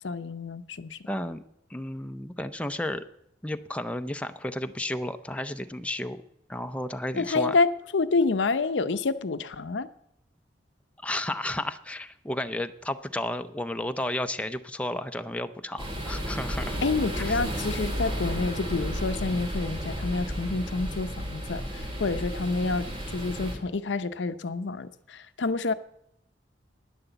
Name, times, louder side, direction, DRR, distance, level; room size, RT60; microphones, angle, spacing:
voice 1, 0.0-1.0 7.2-9.9 16.8-25.7, left 3 dB, 85° left, 0.7 m, -28 dB
voice 2, 1.1-1.4 1.7-3.0 3.4-6.2 6.5-7.6 11.0-16.8 17.2-17.4, left 1 dB, 5° left, 0.5 m, -32 dB
sound 1, 15.8-23.6, equal, 30° right, 3.1 m, -33 dB
11.0 x 10.0 x 7.9 m
head